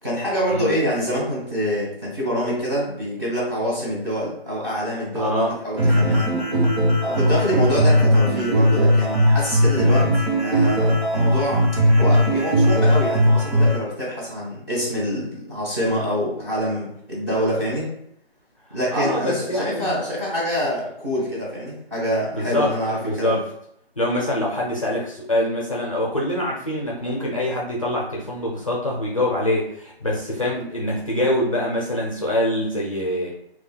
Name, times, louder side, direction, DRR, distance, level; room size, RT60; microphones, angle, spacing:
voice 1, 0.0-6.3 7.0-10.1 10.4-17.9 18.7-23.4, equal, 15° right, -6 dB, 0.8 m, -26 dB
voice 2, 5.1-5.5 18.7-19.9 22.3-22.7 22.9-23.4 24.0-33.3, left 1 dB, 35° left, -4 dB, 0.5 m, -24 dB
sound 1, 5.8-13.8, equal, 80° right, 1.0 m, -18 dB
3.1 x 2.2 x 2.2 m, 0.73 s
figure-of-eight pair, 160°, 31 cm